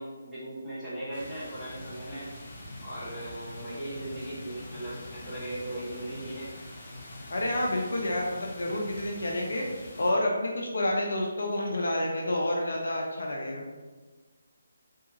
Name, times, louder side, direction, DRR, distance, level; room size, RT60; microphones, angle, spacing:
voice 1, 0.0-2.3 2.8-6.5, right 1 dB, 5° left, -14 dB, 1.0 m, -38 dB
sound 1, 1.1-10.1, left 1 dB, 35° left, 0.9 m, -44 dB
voice 2, 7.3-9.6 10.0-13.7, left 1 dB, 65° left, -1 dB, 0.4 m, -29 dB
2.7 x 2.3 x 2.7 m, 1.3 s
figure-of-eight pair, 145°, 0 cm